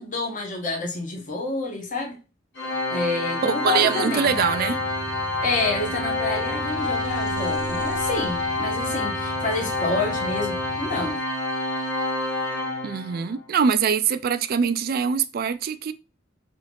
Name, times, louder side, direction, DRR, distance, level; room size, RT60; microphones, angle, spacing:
voice 1, 0.0-2.2 2.9-4.4 5.4-11.2, left 3 dB, 45° left, 0.9 m, -28 dB
Organ, 2.6-13.3, left 2 dB, 60° left, 1.3 m, -28 dB
voice 2, 3.4-4.8 12.8-15.9, right 6 dB, 50° right, 0.3 m, -23 dB
sound 1, 4.3-11.1, equal, 5° right, 0.7 m, -38 dB
3.8 x 2.4 x 3.4 m
head